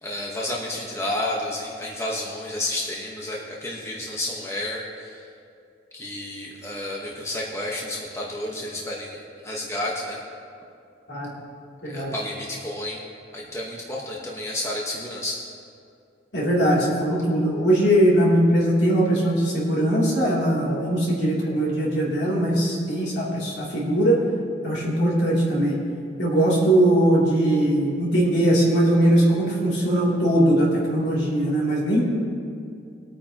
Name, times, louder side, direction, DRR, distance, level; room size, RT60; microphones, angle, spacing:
voice 1, 0.0-5.2 5.9-10.2 11.8-13.0 13.3-15.4, left 1 dB, 15° left, -3 dB, 1.2 m, -31 dB
voice 2, 11.8-12.1 16.3-24.2 24.6-25.8 26.2-32.1, right 1 dB, 70° left, -5 dB, 3.0 m, -20 dB
21.5 x 8.8 x 2.9 m, 2.5 s
head